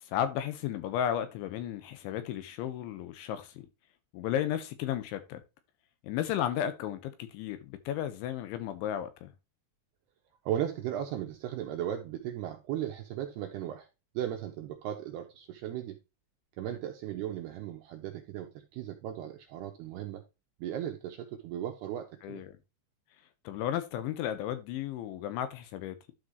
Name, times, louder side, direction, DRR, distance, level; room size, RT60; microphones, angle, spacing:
voice 1, 0.1-3.6 4.1-5.4 6.0-9.3 22.2-22.6 23.4-26.0, left 10 dB, 80° left, 3.2 m, -34 dB
voice 2, 10.5-13.9 14.1-16.0 16.6-20.2 20.6-22.4, right 11 dB, 80° right, 2.5 m, -36 dB
12.0 x 5.0 x 2.9 m
omnidirectional pair, 5.6 m